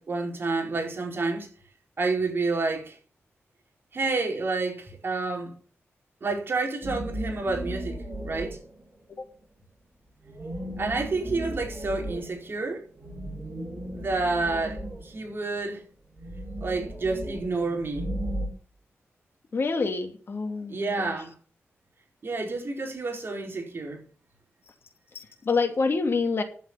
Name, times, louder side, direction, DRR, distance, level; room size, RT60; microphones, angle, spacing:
voice 1, 0.0-1.5 2.0-3.0 3.9-5.6 6.2-8.6 10.8-12.8 13.9-15.8 16.6-18.1 20.7-21.3 22.2-24.0, right 3 dB, 50° right, 4.5 m, -29 dB
sound 1, 6.8-8.9 10.2-15.6 16.1-18.5, right 1 dB, 25° right, 6.4 m, -35 dB
voice 2, 19.5-21.2 25.1-26.4, left 4 dB, 50° left, 2.5 m, -27 dB
11.5 x 7.3 x 7.0 m
wide cardioid pair, 115°, 5 cm